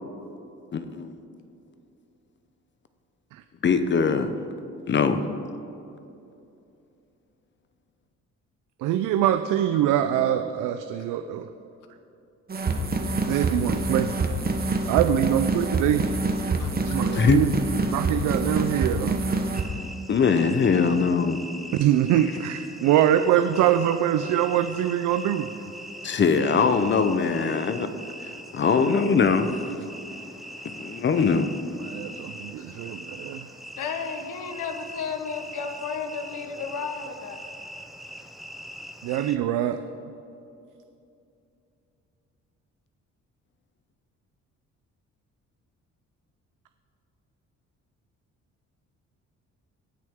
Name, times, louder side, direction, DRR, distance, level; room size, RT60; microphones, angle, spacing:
voice 1, 0.7-1.1 3.6-4.3 4.9-5.2 17.1-17.4 20.1-21.4 26.0-27.9 28.5-29.6 30.6-31.5, left 5 dB, 40° left, 10 dB, 0.6 m, -22 dB
voice 2, 8.8-11.5 13.3-14.1 14.9-16.0 16.7-17.5 17.9-19.2 21.7-25.5 31.8-33.5 39.0-39.8, right 11 dB, 90° right, 9 dB, 0.5 m, -24 dB
sound 1, 12.5-19.6, right 2 dB, 30° right, 0.9 m, -26 dB
voice 3, 16.6-17.0 32.6-32.7 33.8-37.4, left 5 dB, 85° left, 7 dB, 1.0 m, -33 dB
sound 2, 19.5-39.4, equal, ahead, 0.6 m, -41 dB
18.5 x 6.4 x 3.6 m, 2.7 s
cardioid pair, 90°, 30 cm